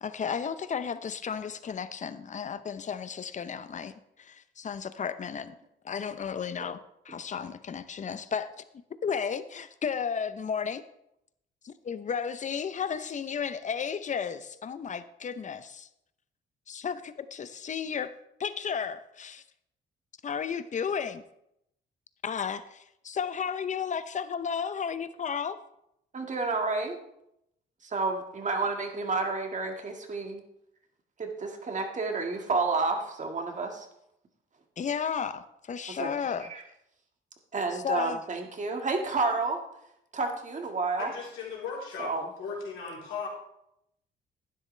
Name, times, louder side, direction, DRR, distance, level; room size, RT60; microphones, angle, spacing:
voice 1, 0.0-5.5 5.8-6.8 7.0-8.6 9.0-10.8 11.6-15.9 16.7-18.1 18.4-19.4 20.2-21.2 22.2-25.6 34.8-36.5 37.7-38.2, left 7 dB, 40° left, 13 dB, 0.7 m, -33 dB
voice 2, 26.1-27.0 27.8-30.4 31.2-33.9 36.0-36.1 36.5-36.6 37.5-39.6 40.1-41.1 42.0-42.3, right 3 dB, 40° right, 4 dB, 1.8 m, -30 dB
voice 3, 40.9-42.1 42.4-43.3, left 5 dB, 85° left, -4 dB, 3.4 m, -37 dB
11.5 x 10.0 x 3.3 m, 0.80 s
cardioid pair, 90°, 20 cm